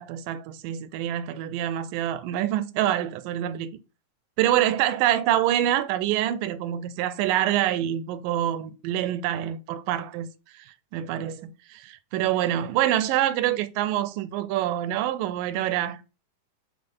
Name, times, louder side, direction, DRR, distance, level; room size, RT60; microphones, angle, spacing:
voice 1, 0.0-3.7 4.4-10.3 10.5-10.7 10.9-16.0, right 12 dB, 85° right, 2.2 m, -26 dB
7.1 x 3.4 x 5.4 m
omnidirectional pair, 3.8 m